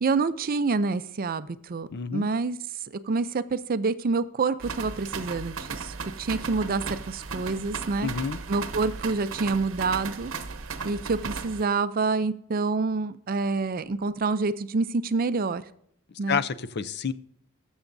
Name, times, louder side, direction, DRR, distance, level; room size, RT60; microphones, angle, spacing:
voice 1, 0.0-2.6 3.0-8.1 8.5-10.3 10.8-15.6 16.2-16.4, right 4 dB, 45° right, 13 dB, 0.5 m, -27 dB
voice 2, 1.9-2.3 8.0-8.4 16.3-17.1, left 6 dB, 50° left, 13 dB, 0.5 m, -29 dB
sound 1, 4.6-11.6, right 4 dB, 65° right, 0.9 m, -36 dB
21.0 x 7.1 x 2.6 m, 0.70 s
head